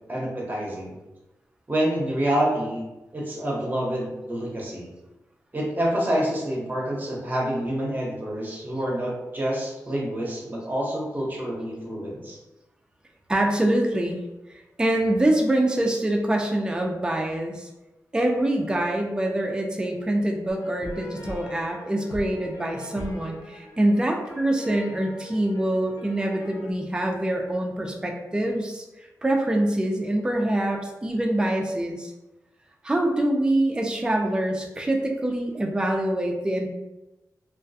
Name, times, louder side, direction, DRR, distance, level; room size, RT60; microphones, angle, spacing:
voice 1, 0.1-1.0 1.7-2.8 3.1-4.9 5.5-12.4, right 1 dB, 30° right, -3 dB, 0.8 m, -27 dB
voice 2, 13.3-14.2 14.5-17.7 18.1-32.1 32.8-36.7, right 1 dB, 15° right, 1 dB, 0.3 m, -25 dB
sound 1, 20.5-26.7, left 1 dB, 90° left, 0.4 m, -41 dB
2.3 x 2.2 x 2.6 m, 1.0 s
cardioid pair, 75°, 6 cm